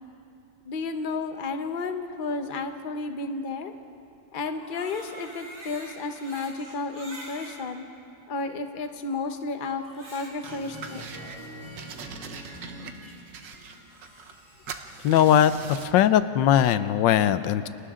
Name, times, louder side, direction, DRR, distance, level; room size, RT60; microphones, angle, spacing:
voice 1, 0.6-3.7 4.3-7.8 8.3-9.8 10.1-11.1, left 3 dB, 35° left, 6 dB, 1.0 m, -32 dB
Crying sobbing, 4.5-7.6 8.3-8.4 9.8-10.6, right 1 dB, 35° right, 3.7 m, -44 dB
sound 1, 10.4-11.4 11.8-14.4 14.7-16.0, right 6 dB, 90° right, 1.8 m, -42 dB
sound 2, 10.5-13.1 13.4-15.7, equal, 10° left, 4.2 m, -44 dB
voice 2, 15.0-17.7, left 10 dB, 85° left, 13 dB, 1.4 m, -20 dB
30.0 x 25.5 x 3.8 m, 2.8 s
omnidirectional pair, 1.9 m